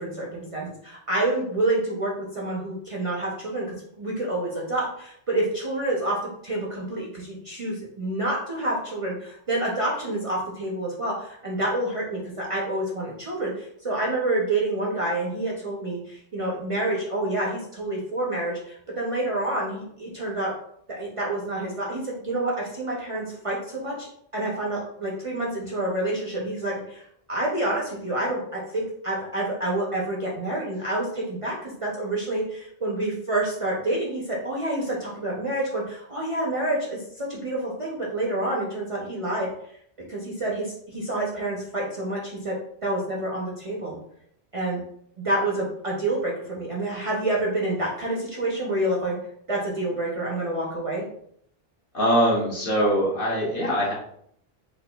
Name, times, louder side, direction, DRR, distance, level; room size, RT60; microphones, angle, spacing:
voice 1, 0.0-6.2 6.4-20.5 21.0-39.5 40.1-42.5 42.8-44.0 44.5-44.8 45.2-49.1 49.5-51.0, right 1 dB, 40° right, -4 dB, 0.6 m, -28 dB
voice 2, 51.9-53.9, equal, 60° left, -5 dB, 1.3 m, -22 dB
4.1 x 2.4 x 2.2 m, 0.68 s
omnidirectional pair, 1.0 m